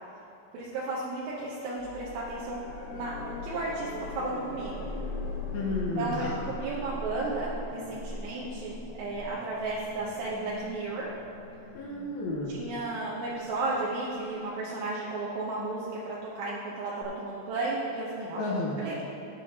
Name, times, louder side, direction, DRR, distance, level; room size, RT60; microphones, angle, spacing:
voice 1, 0.5-2.6 2.9-4.9 6.0-8.7 9.0-11.1 12.5-18.4 18.8-19.0, right 2 dB, 80° right, -6 dB, 3.1 m, -34 dB
sound 1, 1.8-14.7 17.0-17.1, left 2 dB, 90° left, 3.9 m, -40 dB
voice 2, 5.5-6.4 11.7-12.6 18.4-18.8, left 2 dB, 70° left, -3 dB, 2.7 m, -32 dB
16.0 x 9.1 x 2.9 m, 2.9 s
omnidirectional pair, 4.9 m